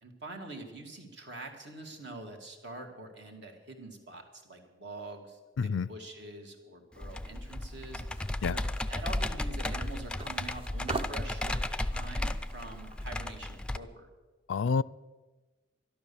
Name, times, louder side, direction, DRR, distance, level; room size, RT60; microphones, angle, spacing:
voice 1, 0.0-5.4 5.9-8.0 8.5-8.6 8.9-14.1, right 2 dB, 60° right, 2.2 m, -45 dB
voice 2, 5.6-5.9 8.4-8.6 14.5-14.8, left 5 dB, 75° left, 0.4 m, -28 dB
Computer keyboard, 7.0-13.8, left 1 dB, 5° left, 0.4 m, -34 dB
sound 1, 8.1-13.2, right 3 dB, 30° right, 0.7 m, -43 dB
12.5 x 12.0 x 7.0 m
head